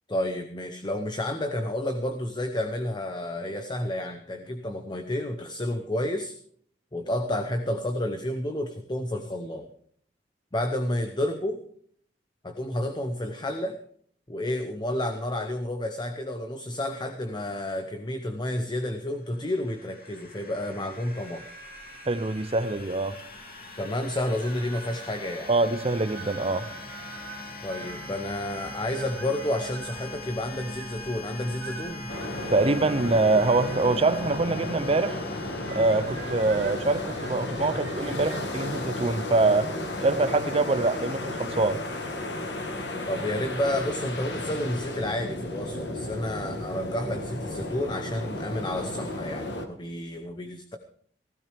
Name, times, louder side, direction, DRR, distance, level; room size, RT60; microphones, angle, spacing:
voice 1, 0.1-6.4 6.9-9.7 10.5-11.6 12.4-13.8 14.3-21.4 23.8-25.5 27.6-32.1 43.1-50.8, left 1 dB, 25° left, 0.8 m, -30 dB
sound 1, 19.2-36.9, left 2 dB, 55° left, 2.7 m, -42 dB
sound 2, 20.9-23.4 24.0-24.1 24.4-38.4, right 5 dB, 65° right, 2.7 m, -46 dB
voice 2, 22.1-23.2 25.5-26.7 32.5-35.2 35.7-39.7 40.0-41.8, right 3 dB, 35° right, 0.7 m, -24 dB
sound 3, 32.1-49.7, left 1 dB, 70° left, 1.8 m, -34 dB
16.0 x 15.0 x 3.5 m
head